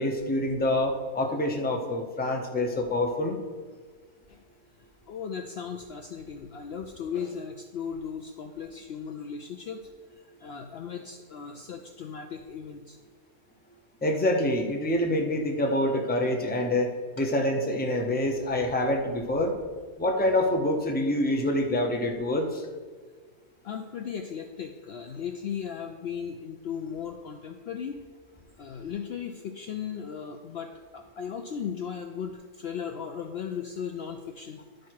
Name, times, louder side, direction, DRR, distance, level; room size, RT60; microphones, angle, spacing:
voice 1, 0.0-3.4 14.0-16.9 17.2-19.5 20.0-22.6, left 1 dB, 10° left, 2 dB, 0.5 m, -26 dB
voice 2, 5.1-9.9 10.2-13.0 17.2-17.3 23.6-28.0 28.6-34.6, left 7 dB, 85° left, 5 dB, 0.5 m, -37 dB
11.5 x 4.6 x 4.7 m, 1.5 s
omnidirectional pair, 1.7 m